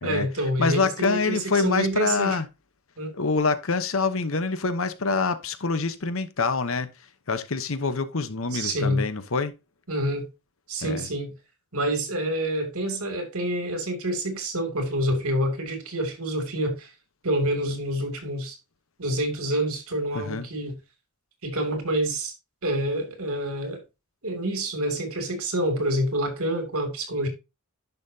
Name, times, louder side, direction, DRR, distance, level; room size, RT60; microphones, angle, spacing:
voice 1, 0.0-2.4 3.0-3.1 8.5-9.0 9.9-10.3 10.7-11.3 11.7-16.9 17.2-18.6 19.0-20.8 21.4-22.3 22.6-23.8 24.2-27.3, right 1 dB, 80° right, 2.7 m, -27 dB
voice 2, 0.6-2.5 3.1-9.5 10.8-11.1 20.1-20.5, left 4 dB, 60° left, 1.0 m, -26 dB
10.5 x 5.7 x 2.8 m
head